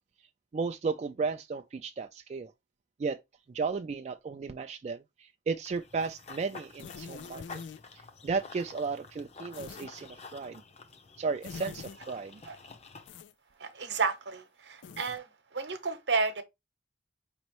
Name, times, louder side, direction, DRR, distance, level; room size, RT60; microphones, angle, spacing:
voice 1, 0.5-2.5 3.0-3.2 3.5-7.6 7.9-10.6 11.2-12.4, right 4 dB, 40° right, 0.3 m, -34 dB
Run / Bird vocalization bird call bird song, 5.7-13.1, left 4 dB, 35° left, 0.7 m, -50 dB
sound 1, 6.8-7.8 9.5-9.9 11.4-12.0 13.1-13.3 14.8-15.2, left 6 dB, 85° left, 0.4 m, -44 dB
voice 2, 13.6-16.4, right 4 dB, 70° right, 0.9 m, -32 dB
5.3 x 3.0 x 3.0 m
head